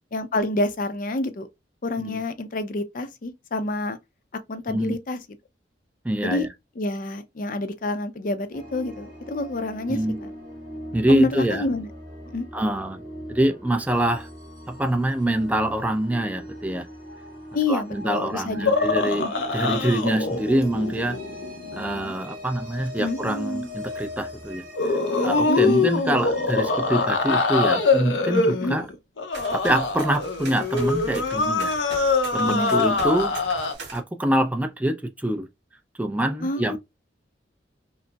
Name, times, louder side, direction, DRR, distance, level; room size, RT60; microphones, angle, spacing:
voice 1, 0.1-1.5 1.8-4.0 4.5-5.2 6.2-6.5 6.8-10.3 11.1-11.9 12.3-12.5 17.5-18.9 19.2-19.3 23.0-23.2 25.5-25.9 28.6-28.8 32.5-32.8 36.4-36.8, left 2 dB, 50° left, 0.5 m, -28 dB
voice 2, 6.0-6.5 9.9-10.2 10.9-11.6 12.5-13.0 13.3-14.3 14.7-16.9 17.7-21.2 21.7-28.9 29.5-31.7 32.3-33.3 33.9-35.5 36.0-36.8, right 1 dB, 10° right, 0.4 m, -25 dB
sound 1, 8.5-28.0, left 1 dB, 50° right, 1.9 m, -40 dB
sound 2, 18.7-22.1 23.2-23.7 24.8-33.7, left 3 dB, 90° left, 0.7 m, -24 dB
sound 3, 29.3-34.0, right 3 dB, 70° right, 1.7 m, -41 dB
5.1 x 2.0 x 2.2 m
head